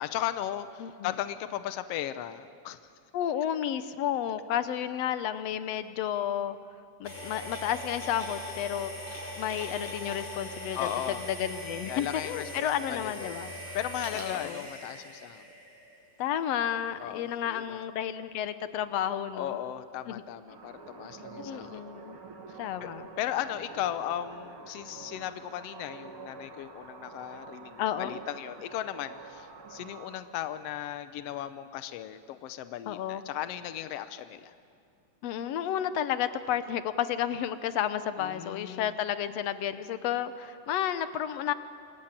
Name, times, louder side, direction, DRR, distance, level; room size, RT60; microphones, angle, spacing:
voice 1, 0.0-2.9 10.7-11.2 11.9-13.3 13.7-15.4 17.0-17.8 19.3-21.8 22.8-22.9 23.2-34.5 38.2-38.9, left 11 dB, 85° left, 11 dB, 1.3 m, -36 dB
voice 2, 0.8-1.1 3.1-6.6 7.0-9.0 9.4-10.9 11.3-13.5 14.1-14.7 16.2-19.6 20.1-20.2 21.4-22.2 22.6-23.1 27.8-28.2 32.9-33.2 35.2-41.5, left 10 dB, 70° left, 12 dB, 1.6 m, -31 dB
sound 1, 7.0-16.0, left 1 dB, 10° left, 7.3 m, -41 dB
sound 2, 20.5-30.2, right 4 dB, 45° right, 2.4 m, -47 dB
26.0 x 22.0 x 9.0 m, 2.3 s
omnidirectional pair, 3.8 m